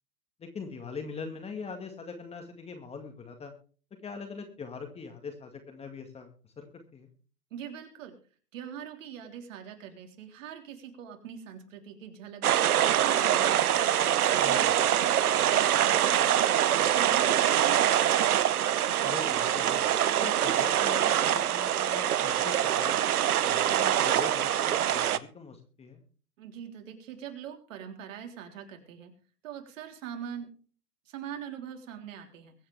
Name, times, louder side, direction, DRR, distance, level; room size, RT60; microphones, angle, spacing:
voice 1, 0.4-3.5 4.0-6.3 6.6-6.7 6.9-7.1 14.4-14.7 19.0-23.0 23.4-26.0, left 5 dB, 15° left, 5 dB, 2.0 m, -42 dB
voice 2, 7.5-8.2 8.5-13.7 14.1-18.3 26.4-29.1 29.4-30.5 31.1-32.5, right 9 dB, 55° right, 4 dB, 3.6 m, -42 dB
sound 1, 12.4-25.2, right 11 dB, 70° right, 1.0 m, -24 dB
23.0 x 8.6 x 3.4 m, 0.40 s
hypercardioid pair, 125°, 47 cm